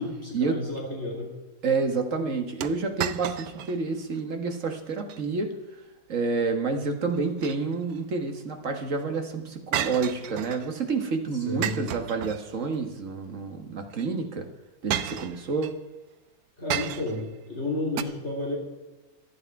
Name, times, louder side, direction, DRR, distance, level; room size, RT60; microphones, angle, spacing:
voice 1, 0.0-1.3 11.5-12.0 16.6-18.6, left 2 dB, 45° left, -2 dB, 3.5 m, -31 dB
voice 2, 1.6-5.5 6.1-14.5 14.8-15.7, right 4 dB, 60° right, 5 dB, 1.9 m, -29 dB
sound 1, 2.6-3.8 4.2-4.3 4.9-5.2 7.1-8.0 9.7-10.7 11.6-12.8 13.9-14.1 14.9-15.8 16.7-17.3 18.0-18.1, right 10 dB, 85° right, 1.2 m, -32 dB
25.0 x 8.7 x 4.8 m, 1.1 s
omnidirectional pair, 1.6 m